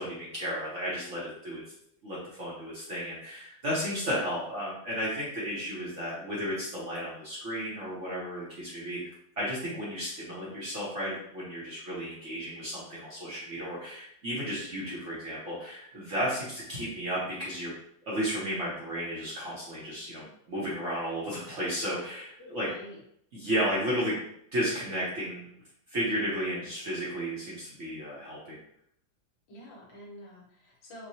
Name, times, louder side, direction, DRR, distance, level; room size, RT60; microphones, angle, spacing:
voice 1, 0.0-1.6 2.0-9.0 9.4-17.7 18.1-22.7 23.3-24.2 24.5-25.5 25.9-28.6, equal, 50° right, -7 dB, 1.0 m, -33 dB
voice 2, 22.6-23.0 29.5-31.1, equal, 75° left, -2 dB, 1.7 m, -48 dB
4.5 x 2.2 x 2.7 m, 0.71 s
omnidirectional pair, 2.1 m